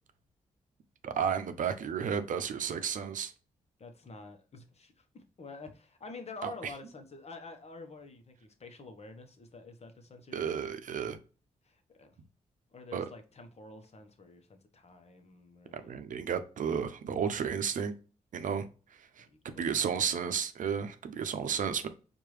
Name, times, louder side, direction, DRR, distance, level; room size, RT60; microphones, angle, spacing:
voice 1, 1.0-3.3 6.4-6.5 10.3-11.2 12.9-13.1 15.8-17.9 18.3-18.7 19.2-21.9, right 7 dB, 65° right, 0.6 m, -32 dB
voice 2, 3.8-10.7 11.6-12.2 12.7-16.0 19.3-19.8, left 3 dB, 50° left, 1.0 m, -48 dB
4.7 x 2.6 x 3.0 m
supercardioid pair, 50°, 14 cm